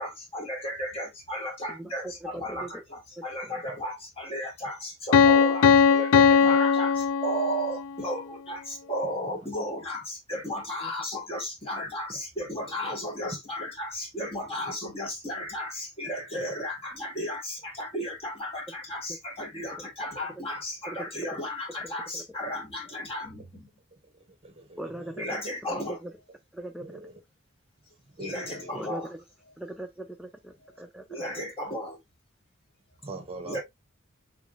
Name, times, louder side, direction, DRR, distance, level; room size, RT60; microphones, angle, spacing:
voice 1, 0.0-23.7 25.2-26.0 28.2-29.1 30.7-30.8 31.1-32.0 33.4-33.6, equal, 30° left, 1.6 m, -34 dB
voice 2, 1.7-2.7 3.2-3.6 10.8-10.9 20.9-21.3 21.8-22.4 24.8-25.4 25.7-26.1 26.5-27.0 28.7-29.2 29.6-31.2, right 1 dB, ahead, 0.4 m, -40 dB
Piano, 5.1-7.9, left 6 dB, 80° left, 0.4 m, -19 dB
voice 3, 8.8-9.4 12.1-12.2 12.8-12.9 16.3-16.5 22.9-23.0 23.9-25.1 26.8-27.2 28.1-28.8 33.0-33.6, right 2 dB, 30° right, 0.8 m, -44 dB
3.4 x 3.3 x 2.4 m
head